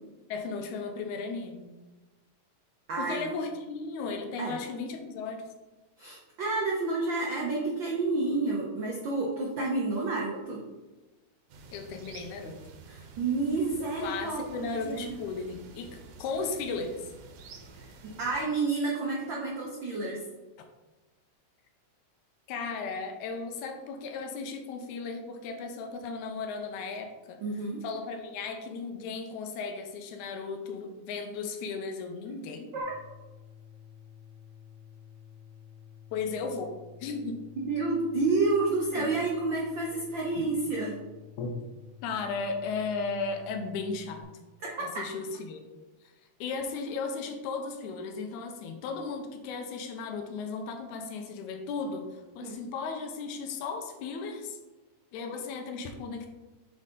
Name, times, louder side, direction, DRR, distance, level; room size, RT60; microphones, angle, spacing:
voice 1, 0.3-1.8 3.0-5.5 11.7-12.6 14.0-17.1 22.5-27.4 27.8-32.7 36.1-37.4 39.0-39.1 40.4-40.5 41.4-41.5 42.0-44.3 44.8-45.6 46.4-54.6 55.1-56.3, left 4 dB, 90° left, 5 dB, 2.1 m, -35 dB
voice 2, 2.9-3.3 4.4-4.6 6.0-10.6 12.9-15.1 17.7-20.2 27.4-27.8 32.7-32.9 37.6-41.0 44.7-44.9 52.4-52.5, right 3 dB, 90° right, -2 dB, 1.0 m, -30 dB
sound 1, 11.5-18.4, right 3 dB, 70° right, 1.9 m, -50 dB
sound 2, 32.8-44.2, left 8 dB, 65° left, 0.9 m, -51 dB
7.4 x 3.7 x 3.8 m, 1.1 s
omnidirectional pair, 3.4 m